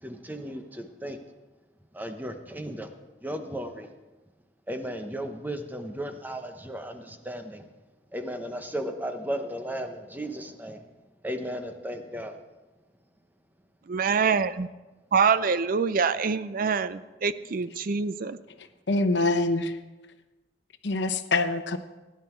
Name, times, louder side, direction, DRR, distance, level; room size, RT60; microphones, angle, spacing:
voice 1, 0.0-1.2 1.9-2.9 3.2-3.9 4.7-7.6 8.1-10.8 11.2-12.4, equal, 10° right, 6 dB, 1.0 m, -35 dB
voice 2, 13.9-14.7 15.1-18.4, right 5 dB, 50° right, 14 dB, 0.5 m, -25 dB
voice 3, 18.6-19.8 20.8-21.8, left 2 dB, 70° left, 9 dB, 0.9 m, -25 dB
16.5 x 10.5 x 4.5 m, 1.2 s
head